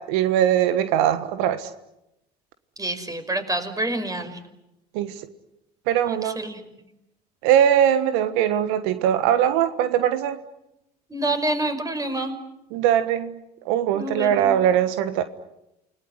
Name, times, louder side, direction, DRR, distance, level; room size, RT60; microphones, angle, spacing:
voice 1, 0.0-1.7 4.9-5.2 5.9-6.4 7.4-10.4 12.7-13.4 13.6-15.2, right 10 dB, 75° right, 11 dB, 1.4 m, -21 dB
voice 2, 2.8-4.4 6.1-6.7 11.1-12.3 13.9-14.5, right 1 dB, 15° right, 7 dB, 5.6 m, -27 dB
28.5 x 20.0 x 9.7 m, 0.90 s
hypercardioid pair, 70°, 20 cm